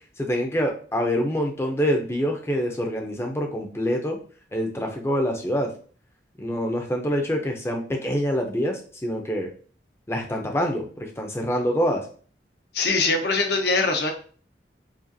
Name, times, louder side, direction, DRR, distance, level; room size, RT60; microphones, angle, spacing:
voice 1, 0.2-4.2 4.5-5.7 6.4-9.5 10.1-12.1, equal, 15° left, 2 dB, 0.6 m, -26 dB
voice 2, 12.7-14.1, left 3 dB, 65° left, 4 dB, 0.7 m, -22 dB
4.9 x 2.4 x 2.7 m, 0.42 s
head